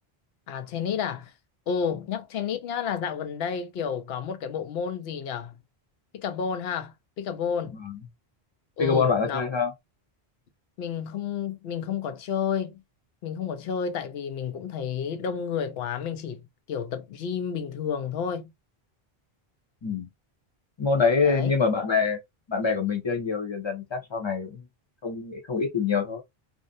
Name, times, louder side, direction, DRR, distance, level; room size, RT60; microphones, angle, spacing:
voice 1, 0.5-1.3 1.7-5.6 6.1-7.8 8.8-9.5 10.8-12.8 13.2-18.5 21.2-21.5, left 7 dB, 80° left, 0.8 m, -31 dB
voice 2, 8.8-9.7 19.8-20.1 20.8-22.2 22.5-24.6 25.0-26.2, left 5 dB, 30° left, 0.6 m, -25 dB
2.5 x 2.1 x 2.5 m
omnidirectional pair, 1.0 m